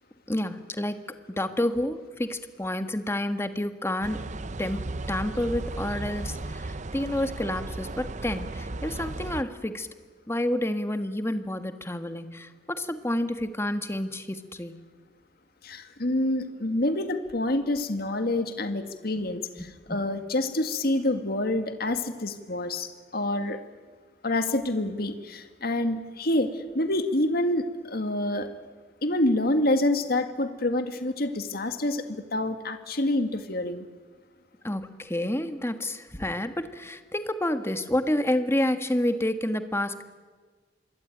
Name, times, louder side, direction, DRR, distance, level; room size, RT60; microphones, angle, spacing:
voice 1, 0.3-1.0 1.4-4.2 4.6-9.9 10.3-14.8 19.6-20.0 34.6-40.0, left 1 dB, 15° left, 9 dB, 1.5 m, -29 dB
sound 1, 4.0-9.4, right 2 dB, 45° right, 0.8 m, -35 dB
voice 2, 15.6-23.6 24.2-28.5 29.0-32.0 32.3-33.9, left 1 dB, 60° left, 8 dB, 1.9 m, -27 dB
26.5 x 22.5 x 9.1 m, 1.5 s
head